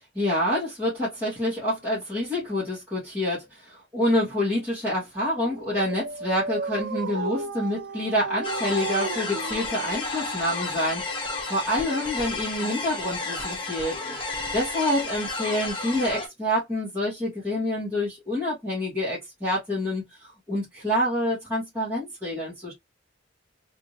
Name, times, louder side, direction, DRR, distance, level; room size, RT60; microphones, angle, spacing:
voice 1, 0.2-20.0 20.5-22.7, left 1 dB, 15° right, 1.9 m, -27 dB
Dog, 5.3-11.0, right 4 dB, 75° right, 0.6 m, -34 dB
sound 1, 8.4-16.3, left 3 dB, 30° left, 1.4 m, -32 dB
3.4 x 2.8 x 3.2 m
head